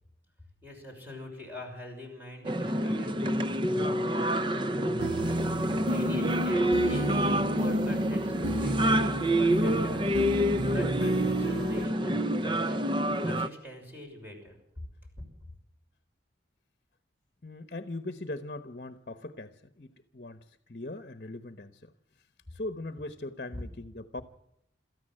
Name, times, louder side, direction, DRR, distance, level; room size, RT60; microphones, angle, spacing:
voice 1, 0.6-3.6 4.3-4.7 5.6-14.6, equal, 10° right, 1 dB, 6.2 m, -44 dB
sound 1, 2.4-13.5, right 1 dB, 25° right, 0.7 m, -27 dB
sound 2, 5.0-11.9, equal, 85° right, 1.2 m, -32 dB
voice 2, 17.4-21.9 22.5-24.2, left 2 dB, 50° left, 10 dB, 1.1 m, -40 dB
28.0 x 14.0 x 7.8 m, 0.82 s
head